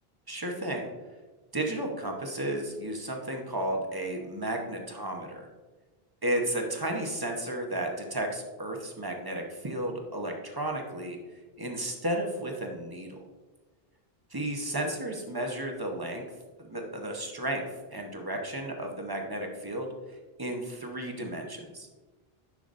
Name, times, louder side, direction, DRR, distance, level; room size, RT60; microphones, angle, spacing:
voice 1, 0.3-0.9 1.5-5.5 6.2-11.2 11.6-13.2 14.3-16.2 16.7-17.6 17.9-19.9 20.4-21.9, right 1 dB, 25° right, 2 dB, 0.9 m, -33 dB
10.5 x 5.8 x 2.6 m, 1.2 s
omnidirectional pair, 1.0 m